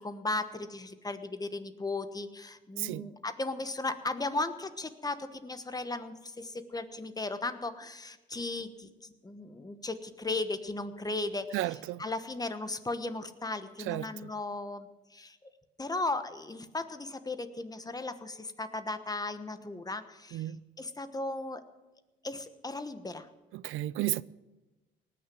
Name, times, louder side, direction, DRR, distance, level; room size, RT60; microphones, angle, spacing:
voice 1, 0.0-11.5 12.0-15.4 15.8-20.4 20.8-21.6 22.2-23.3, left 2 dB, 20° left, 1.2 m, -36 dB
voice 2, 2.8-3.1 11.5-12.0 13.8-14.3 20.3-20.6 23.5-24.2, right 16 dB, 85° right, 0.5 m, -33 dB
18.5 x 6.8 x 9.3 m
cardioid pair, 90°, 20 cm